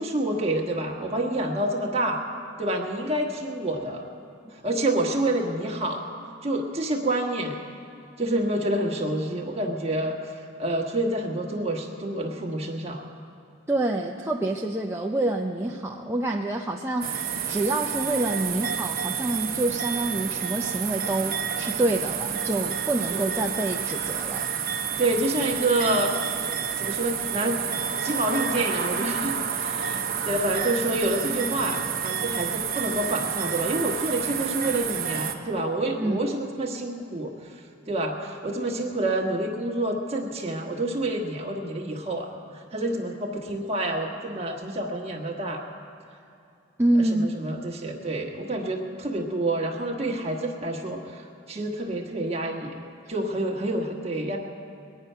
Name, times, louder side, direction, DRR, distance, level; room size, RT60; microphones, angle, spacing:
voice 1, 0.0-2.2 2.6-4.1 4.5-6.0 6.4-7.6 8.2-13.0 23.1-23.2 25.0-26.1 26.8-27.6 28.0-45.6 47.1-52.7 53.1-54.4, right 1 dB, 30° right, 0 dB, 1.4 m, -28 dB
voice 2, 13.7-24.5 36.0-36.2 46.8-47.3, right 1 dB, 10° right, 0 dB, 0.5 m, -27 dB
sound 1, 17.0-35.3, right 7 dB, 45° right, 0.9 m, -29 dB
22.0 x 9.3 x 5.6 m, 2.5 s
head